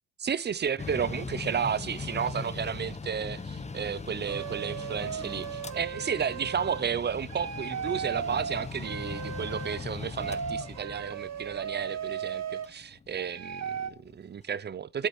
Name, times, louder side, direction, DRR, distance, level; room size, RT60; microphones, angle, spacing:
voice 1, 0.2-15.1, right 7 dB, 35° right, 0.8 m, -32 dB
Mechanical fan, 0.8-14.1, left 4 dB, 20° left, 1.1 m, -40 dB
sound 1, 4.3-6.8 7.3-9.8 10.2-12.7 13.1-13.9, right 8 dB, 60° right, 1.4 m, -36 dB
8.4 x 7.6 x 7.3 m
cardioid pair, 90°, 30 cm